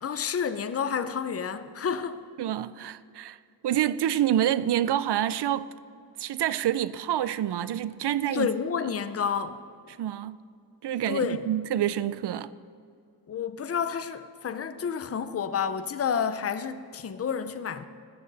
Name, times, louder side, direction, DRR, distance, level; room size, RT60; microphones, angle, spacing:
voice 1, 0.0-2.2 8.3-9.6 11.1-11.5 13.3-17.8, left 7 dB, 35° left, 0.5 m, -30 dB
voice 2, 2.4-3.4 3.6-5.7 6.2-8.5 10.0-10.4 10.8-12.5, right 11 dB, 80° right, 0.5 m, -27 dB
15.0 x 14.0 x 4.0 m
wide cardioid pair, 175°, 40 cm